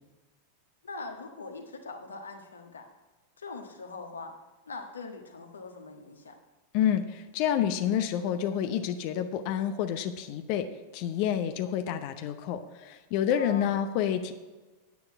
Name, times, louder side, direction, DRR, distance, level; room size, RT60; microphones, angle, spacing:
voice 1, 0.8-2.9 3.4-4.3 4.7-6.3 13.3-13.8, left 3 dB, 70° left, 4 dB, 1.5 m, -42 dB
voice 2, 6.7-10.7 10.9-14.3, left 9 dB, 45° left, 9 dB, 0.7 m, -28 dB
9.7 x 9.3 x 4.7 m, 1.2 s
figure-of-eight pair, 90°, 0 cm